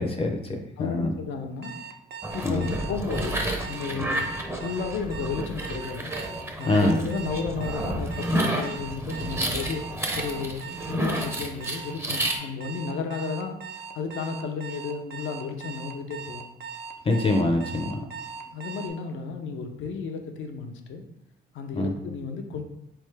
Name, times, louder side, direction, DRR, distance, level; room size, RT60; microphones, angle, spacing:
voice 1, 0.0-1.1 2.4-2.6 6.7-7.0 17.0-18.0 21.7-21.9, left 2 dB, 30° left, 4 dB, 0.6 m, -24 dB
voice 2, 0.8-1.7 2.3-4.3 4.6-6.1 6.6-9.9 10.1-13.6 13.9-16.5 18.5-21.0 21.5-22.6, left 5 dB, 75° left, 5 dB, 0.6 m, -33 dB
Alarm, 1.6-18.9, right 6 dB, 55° right, 0.5 m, -40 dB
sound 1, 2.2-12.4, right 1 dB, 10° right, 0.6 m, -31 dB
3.7 x 3.4 x 3.3 m, 0.84 s
cardioid pair, 90°, 20 cm